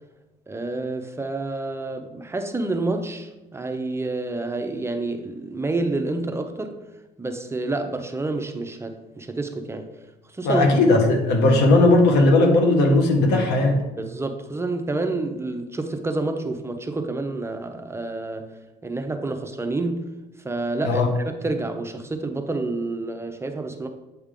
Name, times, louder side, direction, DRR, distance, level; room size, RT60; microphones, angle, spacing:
voice 1, 0.5-6.8 7.2-9.9 10.3-10.8 14.0-18.5 18.8-20.1 20.4-23.9, right 2 dB, 15° right, 5 dB, 0.5 m, -28 dB
voice 2, 10.4-13.8 20.8-21.1, left 2 dB, 85° left, 3 dB, 1.2 m, -17 dB
8.1 x 3.4 x 3.7 m, 1.0 s
cardioid pair, 110°, 17 cm